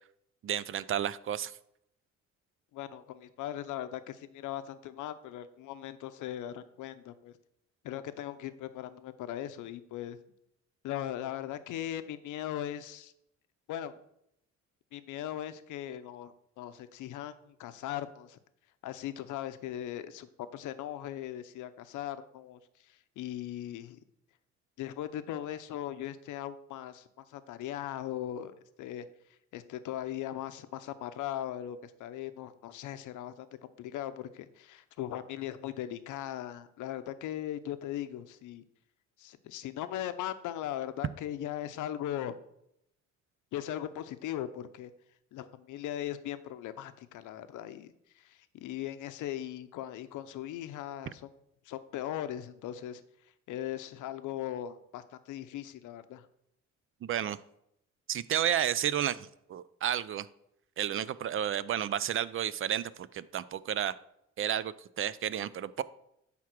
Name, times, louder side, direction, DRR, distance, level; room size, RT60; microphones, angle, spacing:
voice 1, 0.4-1.5 57.0-57.4 58.1-60.3 60.8-64.0 64.4-65.8, right 10 dB, 45° right, 17 dB, 0.4 m, -32 dB
voice 2, 2.7-7.3 7.8-10.2 10.8-13.1 13.7-13.9 14.9-18.4 18.8-22.6 22.9-24.0 24.8-29.1 29.5-33.5 33.8-38.6 39.2-42.3 43.5-44.9 45.3-51.3 51.7-53.0 53.5-56.3, left 12 dB, 85° left, 11 dB, 0.7 m, -39 dB
9.2 x 3.6 x 6.0 m, 0.78 s
cardioid pair, 90°, 30 cm